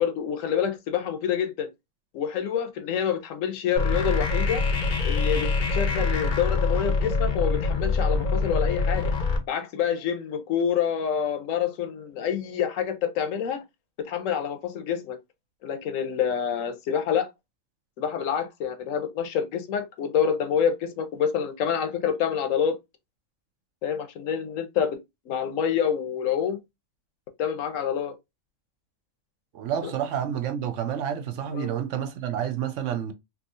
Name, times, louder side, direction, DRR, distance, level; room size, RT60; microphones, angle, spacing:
voice 1, 0.0-1.7 2.1-4.6 5.0-9.1 9.5-13.6 14.0-15.2 15.6-17.3 18.0-22.8 23.8-25.0 25.3-26.6 27.4-28.2 29.8-29.9 31.5-31.7, left 8 dB, 75° left, 1.0 m, -27 dB
sound 1, 3.8-9.4, left 3 dB, 45° left, 0.6 m, -24 dB
voice 2, 29.5-33.1, right 9 dB, 70° right, 0.9 m, -29 dB
3.5 x 2.7 x 2.5 m
omnidirectional pair, 1.4 m